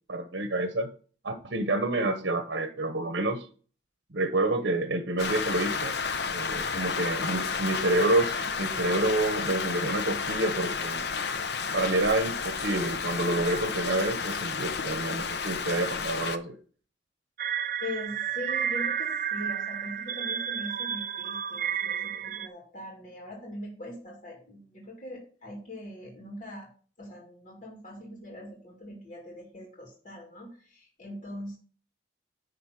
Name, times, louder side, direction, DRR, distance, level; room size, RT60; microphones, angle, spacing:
voice 1, 0.1-0.9 1.2-3.5 4.1-5.9 6.3-11.0 11.7-16.6, right 2 dB, 75° right, 7 dB, 1.1 m, -28 dB
Rain, 5.2-16.4, left 5 dB, 65° left, 0.7 m, -31 dB
sound 1, 17.4-22.5, right 8 dB, 45° right, 0.5 m, -31 dB
voice 2, 17.8-26.7 27.0-31.6, left 1 dB, 45° left, -2 dB, 2.5 m, -41 dB
10.5 x 3.9 x 6.0 m, 0.41 s
head